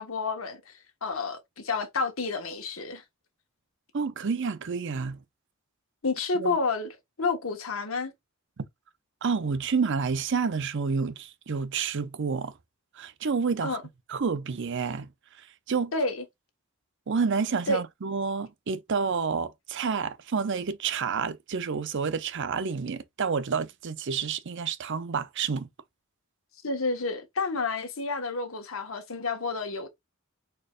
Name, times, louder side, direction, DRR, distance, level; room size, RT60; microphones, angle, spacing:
voice 1, 0.0-3.0 6.0-8.1 13.6-13.8 15.9-16.2 17.7-17.8 26.6-29.9, left 3 dB, 70° left, 1.4 m, -30 dB
voice 2, 3.9-5.2 6.3-6.6 8.6-8.7 9.2-12.5 13.0-13.8 14.1-15.1 15.7-15.9 17.1-25.7, right 5 dB, 60° right, 0.6 m, -29 dB
4.9 x 4.5 x 2.4 m
head